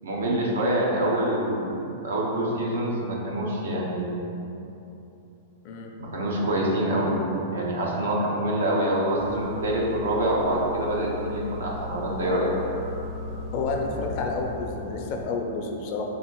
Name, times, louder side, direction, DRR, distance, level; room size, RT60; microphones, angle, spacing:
voice 1, 0.0-4.2 6.0-7.2 7.5-12.5, right 1 dB, 90° right, -3 dB, 0.9 m, -26 dB
sound 1, 9.2-15.3, left 2 dB, 45° right, 0.7 m, -37 dB
voice 2, 13.5-16.0, left 3 dB, 50° left, 1 dB, 0.6 m, -30 dB
3.9 x 2.8 x 4.6 m, 2.9 s
hypercardioid pair, 135°, 0 cm